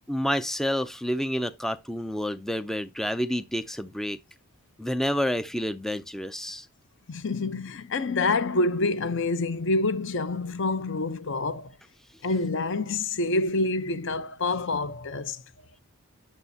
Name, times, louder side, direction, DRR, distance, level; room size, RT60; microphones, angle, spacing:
voice 1, 0.1-4.2 4.8-6.7, equal, ahead, 0.4 m, -29 dB
voice 2, 7.1-11.8 12.2-15.4, left 3 dB, 60° left, 0.8 m, -27 dB
9.0 x 6.9 x 2.7 m
head